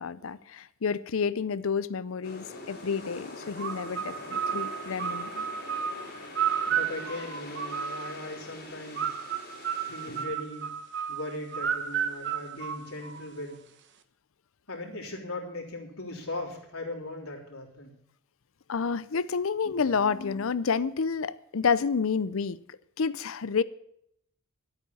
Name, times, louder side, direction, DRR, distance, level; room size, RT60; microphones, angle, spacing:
voice 1, 0.0-5.5 10.1-10.3 18.7-22.6 23.0-23.6, left 5 dB, 65° left, 0.5 m, -29 dB
sound 1, 2.2-10.2, left 2 dB, 45° left, 4.1 m, -43 dB
sound 2, 3.6-8.3 9.0-13.4, right 8 dB, 55° right, 1.0 m, -32 dB
voice 2, 6.7-9.2 9.8-10.7 11.1-13.6 14.7-17.9, left 2 dB, 85° left, 3.7 m, -39 dB
12.5 x 8.7 x 7.1 m
head